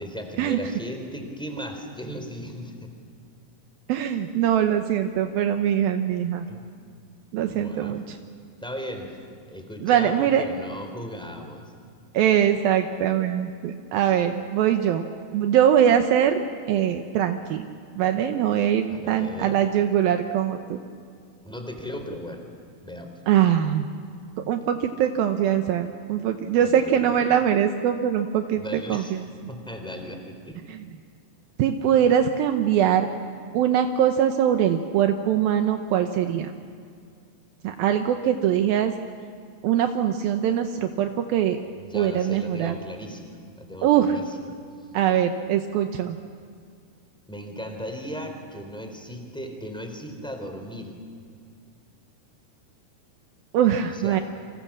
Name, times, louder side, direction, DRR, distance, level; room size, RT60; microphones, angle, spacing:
voice 1, 0.0-2.9 6.5-6.7 7.5-8.0 8.6-9.2 9.5-11.7 18.9-19.6 21.4-22.4 22.8-23.2 26.6-27.4 28.5-29.1 29.5-30.6 41.8-44.6 47.3-51.0 53.8-54.2, equal, ahead, 4 dB, 3.2 m, -37 dB
voice 2, 3.9-6.5 7.3-8.2 9.8-10.4 12.1-15.1 15.3-17.6 18.0-20.8 23.3-23.9 24.4-29.3 30.7-30.8 31.6-33.1 33.5-36.5 37.6-38.9 39.6-41.6 41.9-42.8 43.8-44.2 44.9-46.2 53.5-54.2, right 9 dB, 75° right, 6 dB, 2.7 m, -22 dB
30.0 x 26.0 x 7.4 m, 2.2 s
omnidirectional pair, 4.4 m